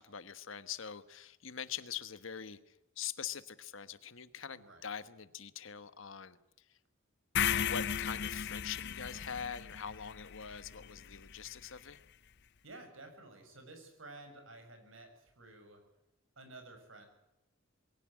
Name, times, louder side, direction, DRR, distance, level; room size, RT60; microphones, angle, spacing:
voice 1, 0.0-6.8 7.6-12.0, left 7 dB, 70° left, 13 dB, 1.3 m, -44 dB
voice 2, 4.5-4.9 12.6-15.8 16.4-17.1, right 2 dB, 70° right, 6 dB, 6.8 m, -53 dB
sound 1, 7.3-11.5, left 8 dB, 55° left, 0.7 m, -36 dB
22.5 x 17.0 x 8.4 m, 0.92 s
head